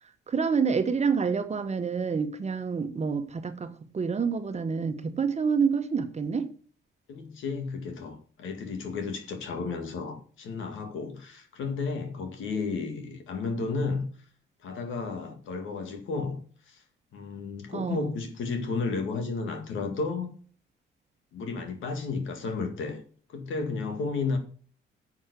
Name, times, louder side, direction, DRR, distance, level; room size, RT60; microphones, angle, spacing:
voice 1, 0.3-6.5 17.7-18.1, right 5 dB, 35° right, 1.1 m, -28 dB
voice 2, 7.1-14.1 14.6-16.4 16.7-16.8 17.1-20.3 21.3-23.0 23.3-24.4, left 4 dB, 80° left, 2.0 m, -33 dB
7.3 x 6.2 x 6.8 m
cardioid pair, 90°, 20 cm